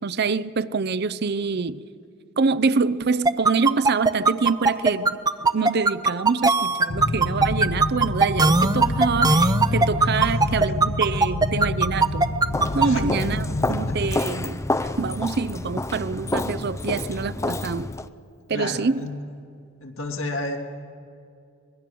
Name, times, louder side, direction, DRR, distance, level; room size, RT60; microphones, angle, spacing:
voice 1, 0.0-1.8 2.4-5.2 5.5-12.3 12.7-17.9 18.5-19.1, right 4 dB, 50° right, 0.6 m, -26 dB
sound 1, 3.3-12.9, right 3 dB, 20° right, 0.7 m, -18 dB
sound 2, 6.9-14.1, left 2 dB, 55° left, 0.9 m, -27 dB
voice 2, 10.1-10.5 12.8-13.0 13.7-13.9 18.5-19.1 19.8-20.6, left 2 dB, 70° left, 2.5 m, -31 dB
Walk footsteps, 12.5-18.1, left 2 dB, 15° left, 0.5 m, -29 dB
25.0 x 20.5 x 7.7 m
head